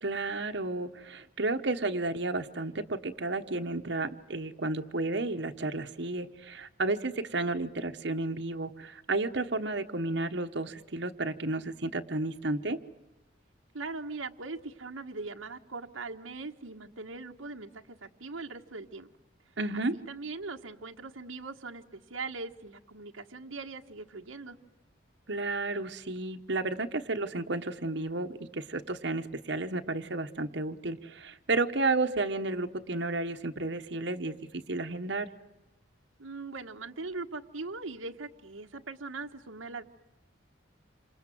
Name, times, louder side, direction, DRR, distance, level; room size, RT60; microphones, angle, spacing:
voice 1, 0.0-12.8 19.6-19.9 25.3-35.3, right 2 dB, 60° right, 6 dB, 1.2 m, -32 dB
voice 2, 13.7-19.1 19.9-24.6 36.2-39.8, right 3 dB, 90° right, 4 dB, 1.4 m, -40 dB
28.0 x 26.5 x 7.8 m, 0.96 s
head